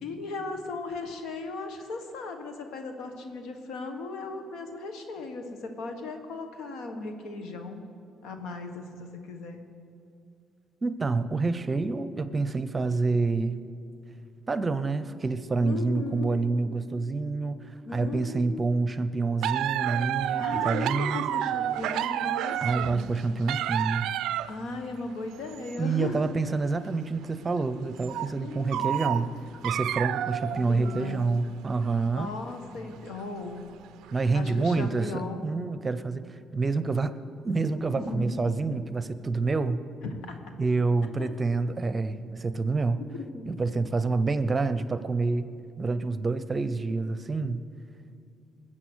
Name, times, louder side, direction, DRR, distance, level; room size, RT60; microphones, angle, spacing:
voice 1, 0.0-7.8 8.2-9.6 15.6-16.4 17.8-18.6 20.4-23.0 24.5-26.3 28.3-28.9 30.5-31.2 32.1-33.7 34.3-35.4 37.9-38.5 40.0-40.4 41.1-41.3 43.1-43.5, left 3 dB, 80° left, 6 dB, 1.5 m, -37 dB
voice 2, 10.8-13.6 14.5-21.3 22.6-24.1 25.8-29.3 29.6-32.3 34.1-36.2 36.5-37.1 37.4-39.8 40.6-43.0 43.5-45.5 45.8-47.6, right 3 dB, 30° right, 12 dB, 0.7 m, -27 dB
sound 1, 19.4-24.6 25.3-25.8 26.3-26.4 26.9-27.0 28.0-28.4 28.7-31.4 31.8-31.9 32.9-33.2 34.0-34.2 34.6-34.7, right 12 dB, 80° right, 0.3 m, -30 dB
20.5 x 7.6 x 6.3 m, 2.5 s
supercardioid pair, 75°, 0 cm